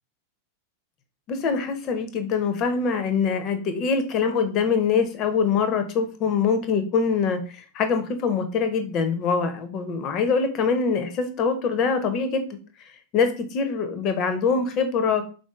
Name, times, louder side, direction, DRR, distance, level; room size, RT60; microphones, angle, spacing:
voice 1, 1.3-12.4 13.1-15.3, left 5 dB, 35° left, 8 dB, 0.5 m, -24 dB
3.7 x 2.5 x 2.3 m, 0.36 s
figure-of-eight pair, 90°, 0 cm